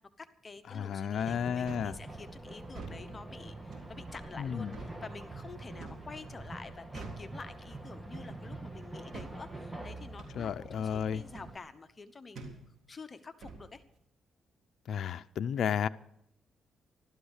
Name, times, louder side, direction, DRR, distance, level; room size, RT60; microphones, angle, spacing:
voice 1, 0.0-12.6 12.9-13.8, left 4 dB, 30° left, 9 dB, 1.0 m, -48 dB
voice 2, 0.7-1.9 4.4-4.8 10.4-11.2 14.9-15.9, left 8 dB, 65° left, 11 dB, 0.5 m, -32 dB
sound 1, 1.2-11.6, right 2 dB, 10° right, 1.5 m, -45 dB
sound 2, 1.6-1.9 2.6-3.0 3.7-3.9 4.7-5.0 5.8-6.1 6.9-7.3 8.1-8.4 9.1-9.4 10.2-10.4 11.3-11.5 12.3-12.6 13.4-13.6, right 4 dB, 60° right, 3.6 m, -45 dB
14.5 x 12.5 x 6.5 m, 0.77 s
cardioid pair, 90°, 0 cm